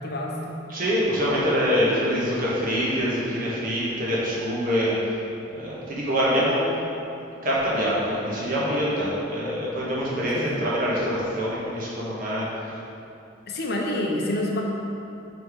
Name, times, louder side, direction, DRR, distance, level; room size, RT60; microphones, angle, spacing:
voice 1, 0.0-0.6 10.3-10.6 13.5-14.6, left 1 dB, 55° left, 0 dB, 0.7 m, -28 dB
voice 2, 0.7-5.1 5.4-6.6 7.4-12.4, equal, 45° right, -7 dB, 1.4 m, -25 dB
5.3 x 4.4 x 4.6 m, 2.7 s
head